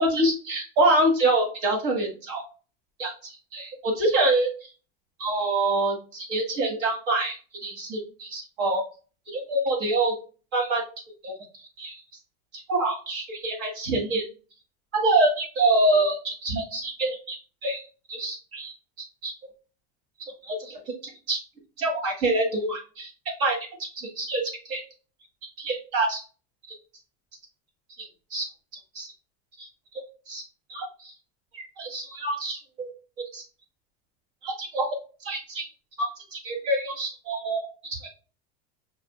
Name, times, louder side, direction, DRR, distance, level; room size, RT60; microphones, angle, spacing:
voice 1, 0.0-2.4 3.0-4.7 5.2-7.4 7.6-8.8 9.3-10.2 10.5-10.8 11.2-12.0 12.5-14.3 14.9-17.8 18.1-18.7 19.2-19.3 20.4-20.8 21.3-21.4 21.8-23.1 23.4-24.8 25.6-26.2 26.7-26.8 28.0-28.4 28.9-29.1 29.6-29.7 30.3-30.4 30.7-31.1 31.5-32.9 33.3-33.4 34.4-34.9 35.2-35.7 36.0-37.6 37.9-38.1, right 2 dB, 60° right, 1 dB, 1.8 m, -26 dB
5.7 x 2.6 x 2.2 m, 0.35 s
cardioid pair, 175°, 31 cm